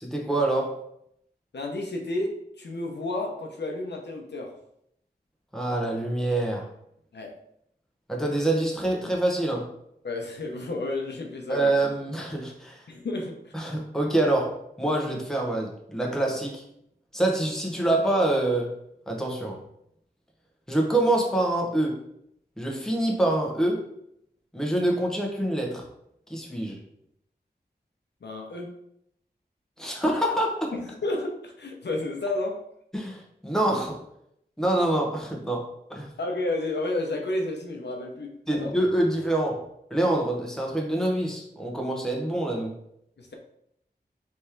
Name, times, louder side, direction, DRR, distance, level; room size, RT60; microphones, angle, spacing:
voice 1, 0.0-0.8 5.5-6.7 8.1-9.7 11.5-12.8 13.5-16.6 17.1-18.7 19.1-19.6 20.7-22.0 22.6-23.9 24.5-25.8 26.3-26.8 29.8-30.7 32.9-34.0 34.6-35.6 35.9-36.1 38.5-39.6 39.9-42.7, right 1 dB, 5° left, 0 dB, 1.0 m, -26 dB
voice 2, 1.5-4.6 7.1-7.3 10.0-11.8 12.9-13.5 28.2-28.7 30.7-32.6 36.2-38.7 43.2-43.3, left 2 dB, 85° left, 2 dB, 0.7 m, -31 dB
3.5 x 3.2 x 4.4 m, 0.74 s
wide cardioid pair, 85°, 17 cm